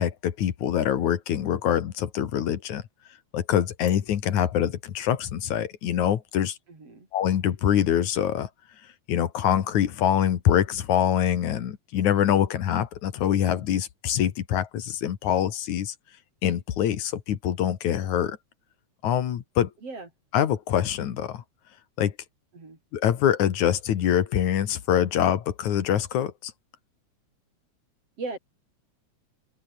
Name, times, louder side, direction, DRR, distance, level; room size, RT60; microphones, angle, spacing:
voice 1, 0.0-2.8 3.3-6.6 7.1-8.5 9.1-15.9 16.4-18.4 19.0-19.7 20.3-21.4 22.0-22.1 22.9-26.5, left 10 dB, 80° left, 3.1 m, -24 dB
voice 2, 6.7-7.1 19.8-20.1 22.5-22.8 28.2-28.4, right 3 dB, 55° right, 7.0 m, -37 dB
open air
omnidirectional pair, 3.3 m